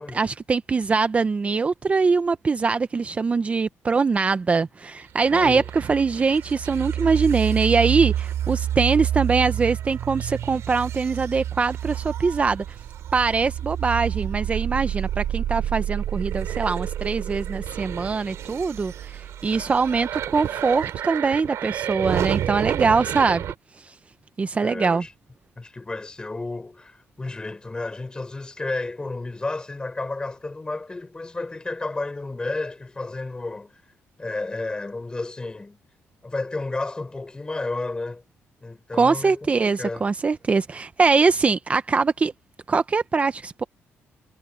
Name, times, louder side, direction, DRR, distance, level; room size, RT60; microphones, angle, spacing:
voice 1, 0.0-12.6 13.1-23.4 23.8-23.9 24.4-25.0 38.9-42.3 42.7-43.6, right 4 dB, 30° right, 0.6 m, -22 dB
sound 1, 5.2-23.5, right 11 dB, 80° right, 5.1 m, -29 dB
voice 2, 5.3-5.7 24.6-25.1 25.6-33.8 34.2-35.8 36.2-38.2 38.6-40.1, left 2 dB, 20° left, 3.8 m, -32 dB
cardioid pair, 120°, 5 cm